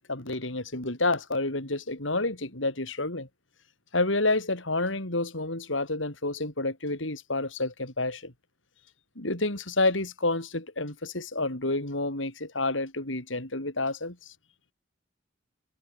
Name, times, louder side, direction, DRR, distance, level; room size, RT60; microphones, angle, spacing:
voice 1, 0.1-3.3 3.9-8.3 9.2-14.2, left 2 dB, 90° left, 5.4 m, -29 dB
head